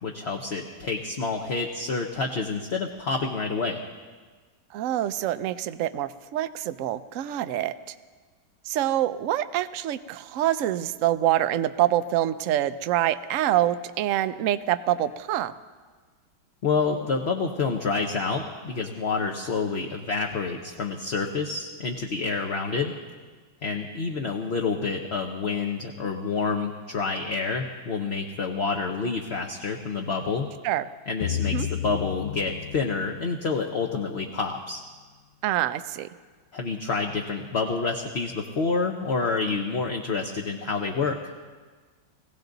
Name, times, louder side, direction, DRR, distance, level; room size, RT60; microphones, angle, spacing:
voice 1, 0.0-3.8 16.6-22.9 23.6-30.5 31.1-34.8 36.5-41.2, left 4 dB, 45° left, 2 dB, 0.9 m, -28 dB
voice 2, 4.7-7.9 8.6-15.5 30.6-30.8 31.4-31.7 35.4-36.1, right 12 dB, 70° right, 11 dB, 0.7 m, -26 dB
sound 1, 31.2-34.3, left 11 dB, 80° left, 1.4 m, -33 dB
21.5 x 16.5 x 4.0 m, 1.4 s
omnidirectional pair, 2.0 m